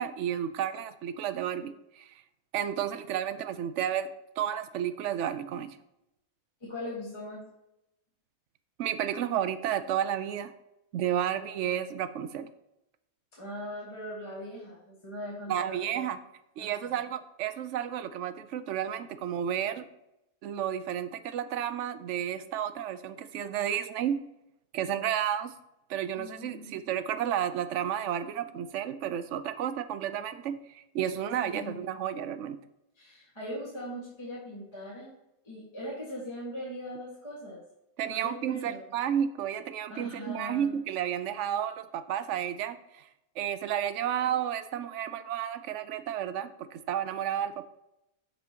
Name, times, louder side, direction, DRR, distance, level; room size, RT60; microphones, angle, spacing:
voice 1, 0.0-2.1 2.5-4.1 4.4-5.8 8.8-10.5 10.9-12.5 15.5-16.2 16.6-19.9 20.4-24.2 24.7-25.5 25.9-32.6 38.0-43.0 43.4-47.6, right 9 dB, 65° right, 11 dB, 0.8 m, -32 dB
voice 2, 6.6-7.4 13.3-16.0 16.6-17.0 26.2-26.8 31.4-31.8 33.0-35.1 35.4-37.6 38.1-38.9 39.9-40.7, left 1 dB, 20° left, -6 dB, 1.7 m, -40 dB
13.0 x 4.3 x 2.8 m, 0.85 s
omnidirectional pair, 1.5 m